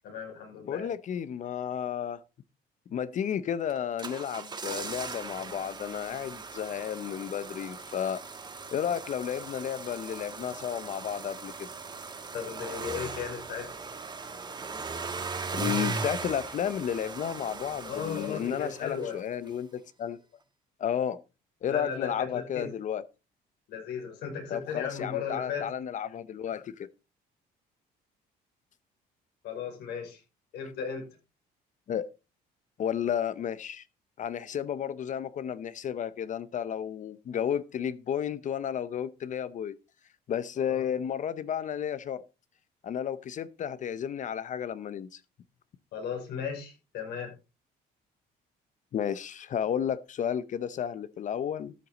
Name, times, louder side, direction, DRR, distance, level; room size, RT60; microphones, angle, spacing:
voice 1, 0.0-0.9 12.3-13.7 17.9-19.2 21.6-22.7 23.7-25.7 29.4-30.2 30.5-31.0 40.7-40.8 45.9-47.3, left 7 dB, 75° left, 5.9 m, -36 dB
voice 2, 0.7-2.2 2.9-8.2 8.7-11.7 15.5-20.2 20.8-21.2 21.6-23.0 24.5-26.9 31.9-32.1 32.8-33.8 34.2-39.8 40.3-42.2 42.8-45.2 48.9-51.7, left 9 dB, 45° left, 0.7 m, -32 dB
sound 1, 3.7-19.2 19.5-19.6, right 4 dB, 25° right, 1.6 m, -38 dB
13.0 x 7.9 x 4.0 m
cardioid pair, 110°, 17 cm